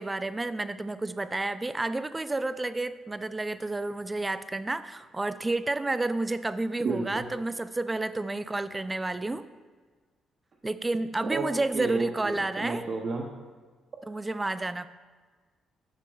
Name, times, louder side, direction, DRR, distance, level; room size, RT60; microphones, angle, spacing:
voice 1, 0.0-9.4 10.6-12.8 14.0-14.9, right 2 dB, 20° right, 13 dB, 0.3 m, -30 dB
voice 2, 6.8-7.3 11.3-11.5 11.7-13.3, right 4 dB, 50° right, 1 dB, 0.7 m, -31 dB
10.5 x 6.0 x 2.3 m, 1.5 s
cardioid pair, 90°, 0 cm